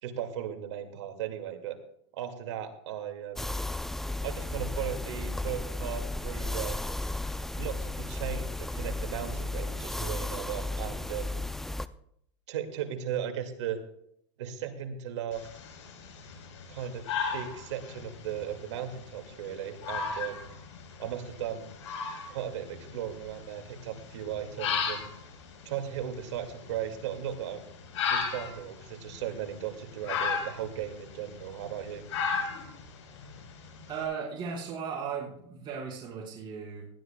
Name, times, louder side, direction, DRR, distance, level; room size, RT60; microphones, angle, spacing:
voice 1, 0.0-1.8 2.1-3.6 4.2-6.8 7.6-11.4 12.5-13.8 14.4-15.5 16.7-17.1 17.3-20.5 21.0-21.7 22.3-25.1 25.7-27.6 28.1-32.0, right 10 dB, 75° right, 6 dB, 2.1 m, -37 dB
sound 1, 3.4-11.9, left 2 dB, ahead, 0.4 m, -34 dB
sound 2, 15.3-34.0, left 6 dB, 85° left, 4.0 m, -37 dB
voice 2, 33.9-36.9, right 6 dB, 35° right, -4 dB, 4.4 m, -36 dB
19.5 x 13.5 x 2.2 m, 0.71 s
supercardioid pair, 130°, 15 cm